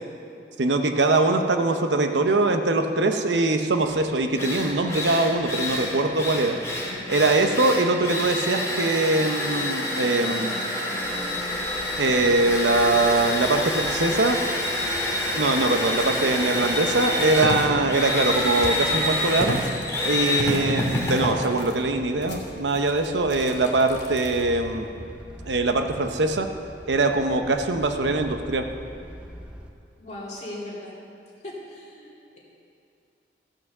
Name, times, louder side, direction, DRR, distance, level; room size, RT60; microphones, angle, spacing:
voice 1, 0.6-6.6 7.1-10.5 12.0-14.4 15.3-19.6 20.0-24.9 25.5-26.5 26.9-28.7, right 2 dB, 80° right, 6 dB, 0.8 m, -22 dB
Drill, 3.9-4.0 4.4-22.5, left 1 dB, 15° left, 1.9 m, -27 dB
sound 1, 11.0-29.7, equal, 5° right, 0.7 m, -45 dB
sound 2, 17.4-24.7, left 2 dB, 80° left, 2.1 m, -46 dB
voice 2, 30.0-30.9 31.4-32.4, left 1 dB, 40° left, -6 dB, 2.6 m, -39 dB
14.5 x 6.0 x 6.6 m, 2.5 s
head